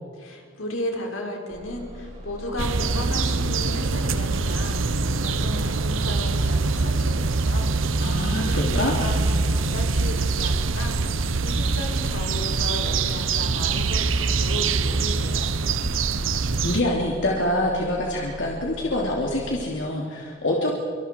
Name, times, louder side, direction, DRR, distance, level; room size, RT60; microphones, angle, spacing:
voice 1, 0.2-7.7 8.0-15.6, left 1 dB, 85° left, 1 dB, 4.7 m, -35 dB
Bus, 1.5-19.7, equal, 35° right, 6.9 m, -40 dB
sound 1, 2.6-16.8, right 4 dB, 75° right, 0.9 m, -24 dB
voice 2, 8.0-9.0 16.6-20.7, left 1 dB, 65° left, -2 dB, 2.9 m, -25 dB
26.5 x 25.5 x 4.6 m, 2.1 s
head